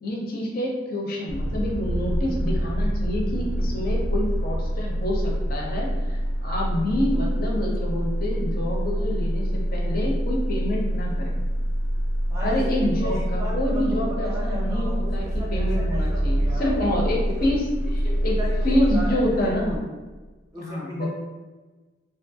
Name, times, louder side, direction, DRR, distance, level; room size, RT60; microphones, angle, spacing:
voice 1, 0.0-11.3 12.4-17.6 17.9-18.4 18.6-19.8 20.6-21.1, left 1 dB, 45° left, -2 dB, 0.5 m, -27 dB
sound 1, 1.3-19.8, equal, 75° right, 0.4 m, -26 dB
voice 2, 12.3-12.6 12.9-16.7 17.2-17.5 18.0-19.5 20.5-21.1, left 1 dB, 15° right, -4 dB, 0.5 m, -36 dB
2.8 x 2.3 x 2.6 m, 1.2 s
head